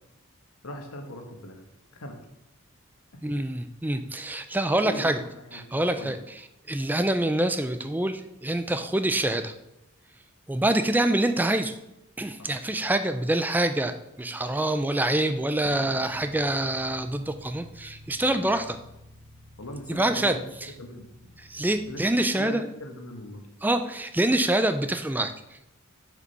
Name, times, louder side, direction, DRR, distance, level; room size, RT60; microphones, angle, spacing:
voice 1, 0.6-1.6 2.0-2.2 4.8-6.1 12.4-12.5 19.6-20.4 20.8-21.1 21.9-23.4, left 1 dB, 90° left, 3 dB, 1.4 m, -40 dB
voice 2, 3.2-5.2 5.5-6.2 6.7-9.5 10.5-11.8 12.2-18.8 19.9-20.7 21.4-22.6 23.6-25.7, right 1 dB, 10° right, 9 dB, 0.4 m, -26 dB
Bass guitar, 15.7-21.9, equal, 75° right, 0.9 m, -49 dB
6.6 x 5.2 x 5.4 m, 0.89 s
head